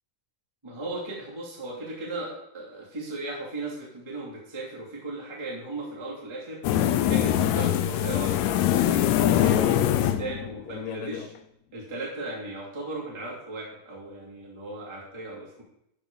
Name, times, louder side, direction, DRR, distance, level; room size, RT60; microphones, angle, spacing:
voice 1, 0.6-6.6 7.1-11.3 11.7-15.6, right 2 dB, 10° right, -6 dB, 2.2 m, -37 dB
sound 1, 6.6-11.3, left 11 dB, 85° left, 1.6 m, -23 dB
12.0 x 4.8 x 5.4 m, 0.80 s
omnidirectional pair, 3.9 m